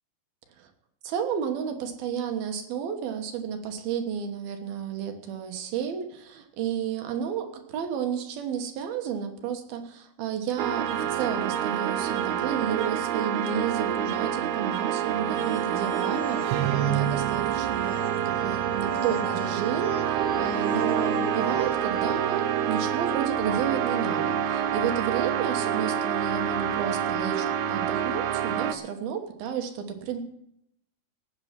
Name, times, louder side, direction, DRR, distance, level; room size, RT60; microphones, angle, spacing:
voice 1, 1.0-30.2, right 7 dB, 70° right, 6 dB, 3.1 m, -32 dB
sound 1, 10.6-28.7, right 9 dB, 90° right, 1.6 m, -27 dB
sound 2, 15.0-22.4, left 4 dB, 45° left, 4.7 m, -41 dB
17.5 x 8.6 x 5.9 m, 0.77 s
omnidirectional pair, 4.6 m